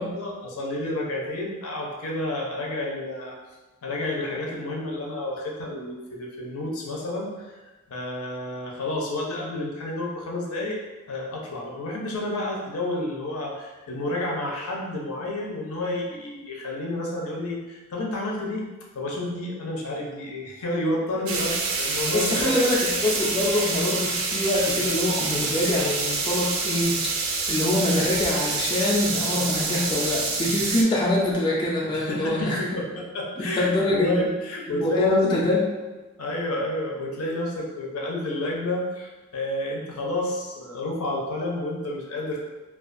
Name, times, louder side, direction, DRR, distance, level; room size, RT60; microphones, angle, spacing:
voice 1, 0.0-3.4 3.8-7.6 7.9-10.8 11.1-18.7 18.9-22.5 31.9-35.4 36.2-42.4, left 1 dB, 90° left, -2 dB, 0.6 m, -30 dB
sound 1, 21.3-30.8, right 4 dB, 70° right, 0.4 m, -27 dB
voice 2, 22.1-27.1 27.5-32.6 33.4-34.3 34.7-35.6, left 2 dB, 20° left, -4 dB, 0.3 m, -24 dB
2.3 x 2.2 x 2.5 m, 1.2 s
head